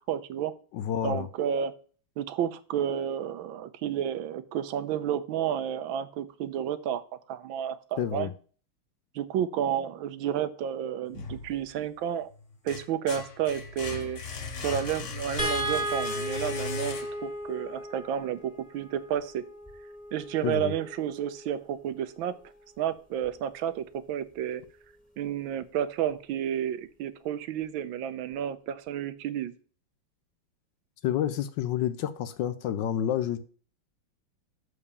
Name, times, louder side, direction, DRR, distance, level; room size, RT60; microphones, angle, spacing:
voice 1, 0.1-0.5 1.0-1.8 2.2-7.0 7.3-8.3 9.1-12.3 12.6-14.2 14.6-19.4 20.1-22.3 22.8-24.6 25.2-29.5, right 9 dB, 80° right, 1.4 m, -31 dB
voice 2, 0.7-1.3 8.0-8.3 20.4-20.7 31.0-33.4, left 10 dB, 75° left, 1.2 m, -29 dB
sound 1, 11.1-12.0 12.4-17.4, left 4 dB, 45° left, 1.2 m, -38 dB
sound 2, 15.4-21.7 23.2-23.4 23.8-23.9, right 1 dB, 5° left, 1.6 m, -36 dB
7.1 x 4.9 x 6.7 m
omnidirectional pair, 2.2 m